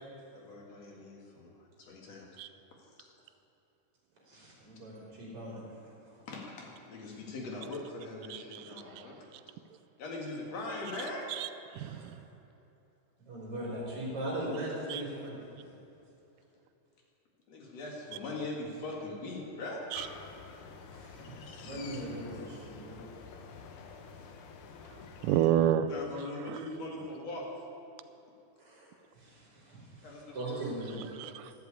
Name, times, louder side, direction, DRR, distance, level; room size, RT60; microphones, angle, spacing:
voice 1, 0.3-1.5 1.8-2.3 6.3-9.2 10.0-11.3 17.5-19.8 24.6-24.7 25.9-27.4 30.0-31.0, left 2 dB, 55° left, -1 dB, 3.0 m, -41 dB
voice 2, 4.3-6.2 11.8-12.0 13.2-15.4 20.9-23.0 28.6-31.0, right 1 dB, 45° right, -5 dB, 4.7 m, -40 dB
voice 3, 8.3-9.4 11.3-12.2 14.9-15.0 19.9-20.1 25.2-25.9 26.5-26.6 31.2-31.5, right 11 dB, 85° right, 12 dB, 2.0 m, -31 dB
sound 1, 19.9-25.5, left 5 dB, 75° left, 2.3 m, -48 dB
12.5 x 8.0 x 8.4 m, 2.9 s
omnidirectional pair, 3.7 m